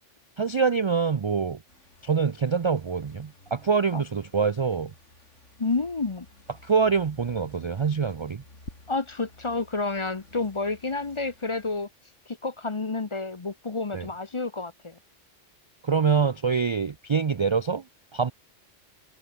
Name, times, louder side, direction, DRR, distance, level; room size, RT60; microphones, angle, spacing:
voice 1, 0.4-1.6 2.0-4.9 6.6-8.4 13.9-14.1 15.8-17.8 18.1-18.3, right 5 dB, 50° right, 0.3 m, -25 dB
sound 1, 1.7-11.9, left 2 dB, 85° left, 5.3 m, -52 dB
voice 2, 5.6-6.3 8.9-11.9 12.3-15.0, left 3 dB, 30° left, 0.8 m, -30 dB
omnidirectional pair, 1.2 m